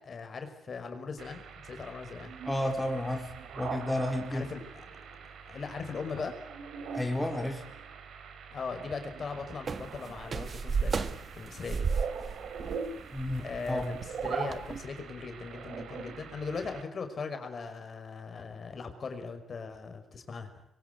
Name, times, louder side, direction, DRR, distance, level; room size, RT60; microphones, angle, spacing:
voice 1, 0.0-2.3 4.3-4.9 5.5-6.4 8.5-11.9 13.4-20.6, left 4 dB, 45° left, 7 dB, 5.5 m, -39 dB
sound 1, 1.2-16.8, right 6 dB, 70° right, 4.5 m, -42 dB
voice 2, 2.5-4.5 6.9-7.7 13.1-13.9, left 1 dB, 5° left, 2 dB, 4.3 m, -32 dB
sound 2, 9.7-14.8, right 5 dB, 40° right, 1.8 m, -33 dB
25.5 x 23.0 x 9.5 m, 0.80 s
cardioid pair, 90°, 0 cm